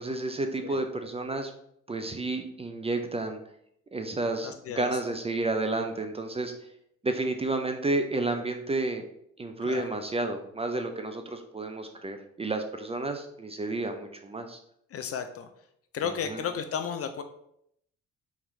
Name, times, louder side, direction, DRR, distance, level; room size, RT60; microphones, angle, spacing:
voice 1, 0.0-1.5 1.9-3.4 3.9-6.5 7.0-9.0 9.4-14.6 16.0-16.4, right 2 dB, 15° right, 5 dB, 0.4 m, -31 dB
voice 2, 4.4-4.9 9.6-9.9 14.9-15.5 15.9-17.2, left 7 dB, 40° left, 8 dB, 0.5 m, -33 dB
3.6 x 3.0 x 3.1 m, 0.73 s
hypercardioid pair, 45°, 36 cm